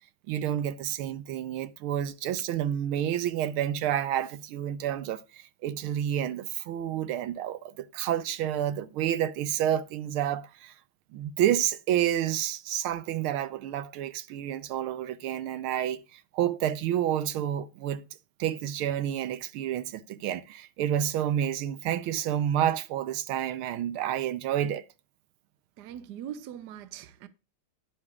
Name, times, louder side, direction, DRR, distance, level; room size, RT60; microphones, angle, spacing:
voice 1, 0.3-10.7 11.1-18.1 18.4-24.8, right 11 dB, 80° right, 1.6 m, -29 dB
voice 2, 25.8-27.3, right 10 dB, 65° right, 1.2 m, -41 dB
11.0 x 9.5 x 2.4 m
omnidirectional pair, 2.3 m